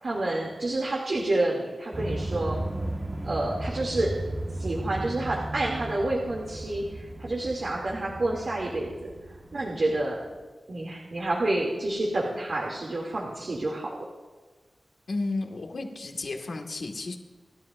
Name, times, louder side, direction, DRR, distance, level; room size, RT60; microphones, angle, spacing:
voice 1, 0.0-2.6 3.2-4.2 4.6-9.1 9.5-10.2 10.7-13.9, right 2 dB, 60° right, -2 dB, 2.8 m, -29 dB
sound 1, 1.9-10.4, right 1 dB, 35° right, 1.7 m, -35 dB
voice 2, 15.1-17.2, left 3 dB, 70° left, 2 dB, 2.0 m, -32 dB
28.0 x 12.5 x 2.7 m, 1.3 s
wide cardioid pair, 100°, 0 cm